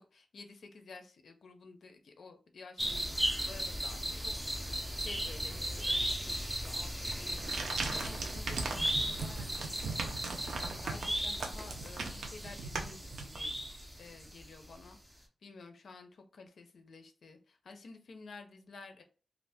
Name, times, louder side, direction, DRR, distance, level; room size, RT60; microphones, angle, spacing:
voice 1, 0.0-19.0, left 4 dB, 60° left, 5 dB, 0.5 m, -52 dB
sound 1, 2.8-14.5 14.7-14.8, equal, 5° right, 0.4 m, -36 dB
sound 2, 7.2-13.8, right 4 dB, 90° right, 0.6 m, -40 dB
2.6 x 2.4 x 3.4 m, 0.36 s
wide cardioid pair, 180°, 0 cm